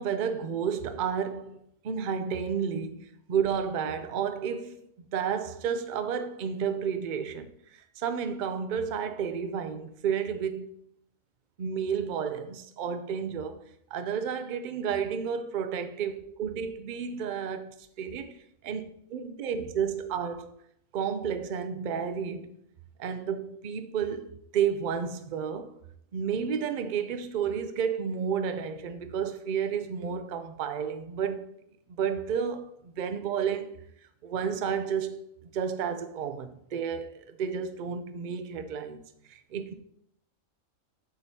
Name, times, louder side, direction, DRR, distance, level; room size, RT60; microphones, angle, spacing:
voice 1, 0.0-1.6 1.8-7.5 8.0-10.7 11.6-13.6 13.9-18.4 18.6-20.5 20.9-22.6 23.0-25.8 26.1-31.5 31.9-33.8 34.2-35.3 35.5-39.0 39.3-39.7, right 7 dB, 55° right, 0.6 m, -31 dB
7.6 x 7.0 x 2.8 m
omnidirectional pair, 1.4 m